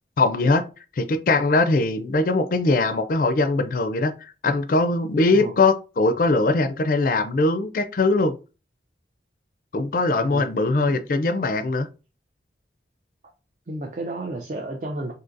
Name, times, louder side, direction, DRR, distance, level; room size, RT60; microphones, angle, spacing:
voice 1, 0.2-0.6 1.0-8.4 9.7-11.9, left 3 dB, 50° left, 0.4 m, -21 dB
voice 2, 13.7-15.1, right 2 dB, 45° right, 0.4 m, -32 dB
3.9 x 2.7 x 2.5 m
head